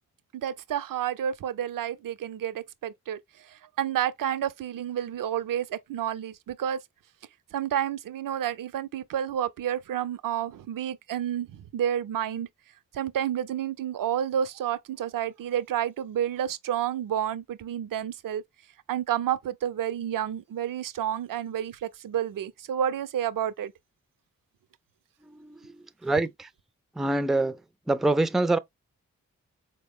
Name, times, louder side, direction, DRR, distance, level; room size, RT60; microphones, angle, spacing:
voice 1, 0.3-3.2 3.5-6.8 7.5-12.5 12.9-18.4 18.9-23.7, right 10 dB, 70° right, 0.5 m, -30 dB
voice 2, 25.3-26.5 27.0-27.6 27.9-28.6, right 2 dB, ahead, 0.3 m, -26 dB
4.0 x 2.0 x 3.5 m
cardioid pair, 40°, 34 cm